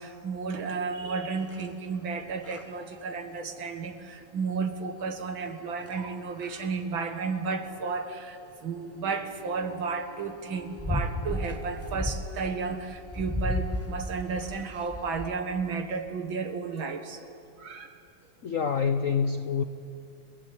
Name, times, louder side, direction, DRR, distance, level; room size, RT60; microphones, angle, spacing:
voice 1, 0.0-17.3 17.6-18.0, right 4 dB, 70° right, 7 dB, 2.4 m, -33 dB
sound 1, 1.4-1.7 2.3-2.6 5.8-6.0 6.4-6.6 10.6-15.3, left 1 dB, 10° left, 0.6 m, -34 dB
sound 2, 8.8-13.8, right 2 dB, 20° right, 5.4 m, -52 dB
voice 2, 18.4-19.6, left 6 dB, 60° left, 8 dB, 0.8 m, -26 dB
29.5 x 19.0 x 8.6 m, 2.5 s
omnidirectional pair, 2.3 m